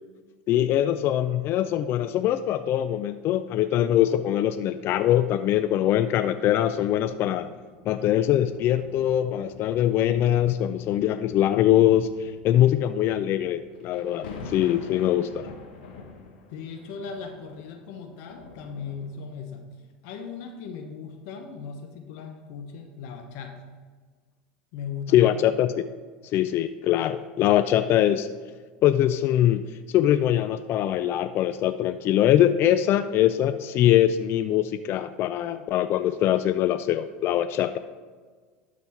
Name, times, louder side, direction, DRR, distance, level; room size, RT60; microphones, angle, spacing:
voice 1, 0.5-7.5 7.9-15.5 25.1-25.7 26.3-28.3 28.8-37.8, left 12 dB, 50° left, 11 dB, 0.3 m, -22 dB
sound 1, 6.7-19.5 20.2-20.3, left 4 dB, 85° left, 1.2 m, -46 dB
voice 2, 16.5-19.7 20.0-23.7 24.7-25.5, left 5 dB, 65° left, 4 dB, 1.0 m, -38 dB
12.0 x 4.1 x 4.5 m, 1.5 s
hypercardioid pair, 100°, 5 cm